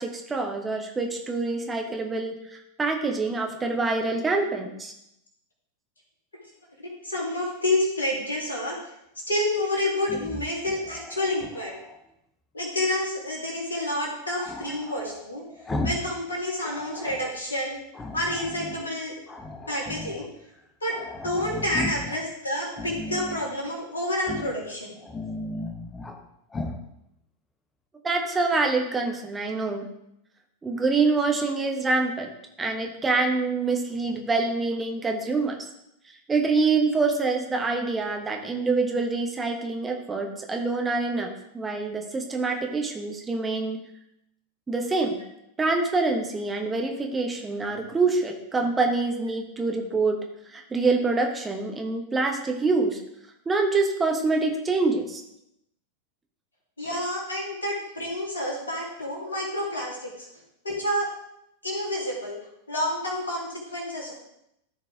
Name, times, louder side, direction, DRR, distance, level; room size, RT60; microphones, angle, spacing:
voice 1, 0.0-4.9 28.0-29.8 30.6-32.3 32.6-35.6 36.3-41.3 41.5-43.8 44.7-45.2 45.6-50.2 50.5-53.0 53.5-55.2, right 3 dB, 15° right, 3 dB, 1.1 m, -26 dB
voice 2, 7.0-8.8 9.3-11.7 12.5-15.4 15.8-17.8 18.1-19.1 19.7-20.3 20.8-24.9 56.8-60.3 60.6-61.1 61.6-62.4 62.7-64.1, left 1 dB, 75° left, -3 dB, 2.7 m, -29 dB
Growling, 10.0-12.0 14.4-16.1 16.4-17.3 17.9-18.8 19.3-20.3 20.6-20.7 20.9-22.2 22.7-23.5 24.2-24.6 25.0-26.2 26.5-26.8, left 2 dB, 15° left, 1.0 m, -36 dB
13.5 x 4.7 x 3.5 m, 0.80 s
figure-of-eight pair, 90°, 0 cm